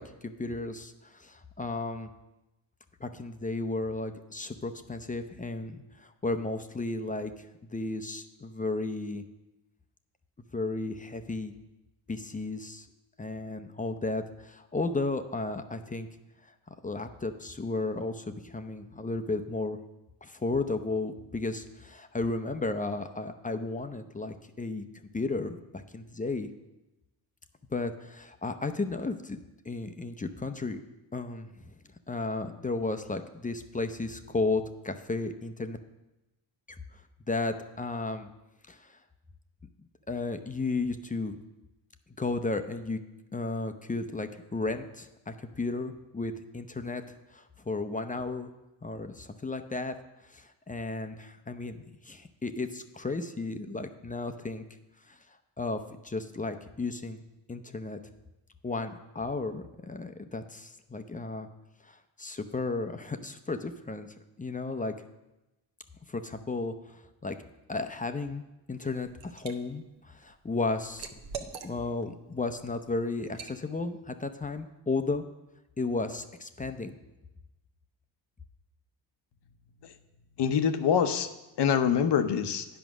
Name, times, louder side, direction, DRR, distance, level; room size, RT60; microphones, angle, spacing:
voice 1, 0.0-2.1 3.0-9.2 10.5-11.5 12.1-12.9 13.2-16.1 16.8-19.8 20.2-24.8 25.1-26.5 27.7-30.8 31.1-31.7 32.1-35.8 37.3-38.3 38.7-39.0 40.1-41.4 42.2-43.0 43.3-48.5 48.8-49.9 50.2-54.6 55.1-55.2 55.6-57.2 57.5-58.0 58.6-61.5 61.8-64.9 66.1-67.4 67.7-68.4 68.7-71.1 71.6-75.2 75.8-77.0, left 3 dB, 15° left, 7 dB, 0.6 m, -34 dB
Liquid, 68.7-69.5 70.0-72.1 72.5-72.7 73.3-73.6, right 6 dB, 60° right, 1.0 m, -43 dB
voice 2, 80.4-81.3 81.6-82.7, left 7 dB, 55° left, 9 dB, 0.8 m, -25 dB
9.2 x 5.1 x 6.0 m, 1.0 s
supercardioid pair, 55°, 50 cm